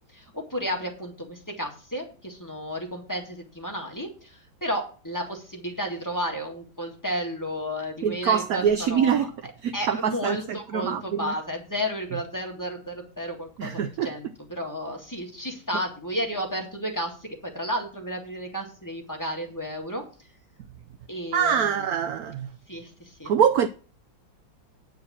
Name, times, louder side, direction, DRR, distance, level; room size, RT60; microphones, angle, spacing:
voice 1, 0.1-9.3 9.7-20.0 21.1-21.8 22.7-23.3, equal, 10° left, 1.8 m, -32 dB
voice 2, 8.0-9.3 9.6-10.4 10.7-11.3 13.6-14.1 21.3-22.5 23.3-23.7, right 8 dB, 75° right, 0.8 m, -24 dB
10.0 x 4.7 x 7.2 m
omnidirectional pair, 2.1 m